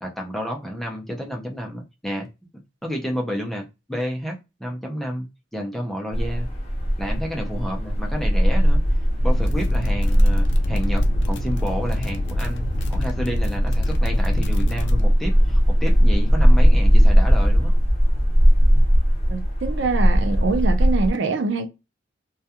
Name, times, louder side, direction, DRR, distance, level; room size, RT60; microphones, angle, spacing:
voice 1, 0.0-2.3 2.8-5.3 5.5-6.5 7.0-8.8 9.2-17.7, equal, ahead, 0.4 m, -30 dB
sound 1, 6.1-21.1, equal, 30° left, 0.7 m, -19 dB
sound 2, 9.3-15.0, left 1 dB, 60° left, 0.4 m, -26 dB
voice 2, 19.3-21.7, right 4 dB, 65° right, 0.5 m, -24 dB
2.3 x 2.2 x 2.7 m
head